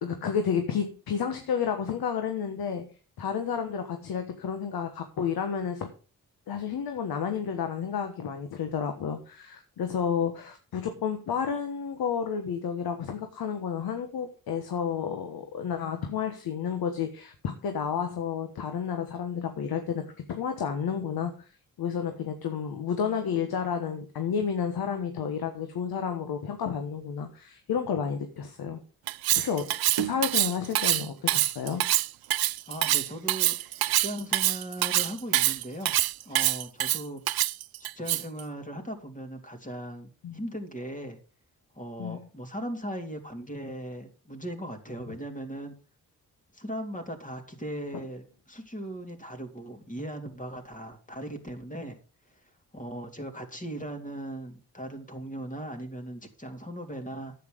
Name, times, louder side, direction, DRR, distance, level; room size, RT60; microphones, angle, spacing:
voice 1, 0.0-5.9 6.5-28.8 29.3-31.9 40.2-40.4 42.0-42.2 45.1-45.2 47.9-48.0, left 7 dB, 85° left, 6 dB, 1.3 m, -31 dB
Cutlery silverware, 29.1-38.4, right 15 dB, 80° right, 0.5 m, -25 dB
voice 2, 32.7-33.6 33.8-35.9 36.2-37.2 38.0-41.2 41.7-45.8 46.5-52.0 52.7-57.3, right 1 dB, 20° left, 4 dB, 3.1 m, -38 dB
9.9 x 8.5 x 5.1 m, 0.37 s
cardioid pair, 60°, 36 cm